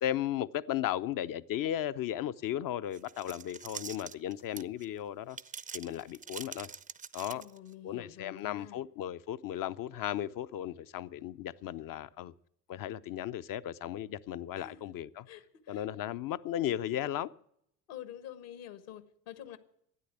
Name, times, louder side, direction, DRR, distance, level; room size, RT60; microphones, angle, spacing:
voice 1, 0.0-5.4 5.7-6.7 7.1-7.4 7.8-12.3 12.7-15.3 15.7-17.3, left 11 dB, 45° left, 0.7 m, -35 dB
sound 1, 2.9-4.9 5.3-7.7, right 6 dB, 15° right, 0.5 m, -44 dB
voice 2, 7.3-8.8 14.6-14.9 15.3-15.9 17.9-19.6, left 11 dB, 60° left, 1.7 m, -47 dB
12.5 x 9.8 x 8.2 m
figure-of-eight pair, 60°, 50 cm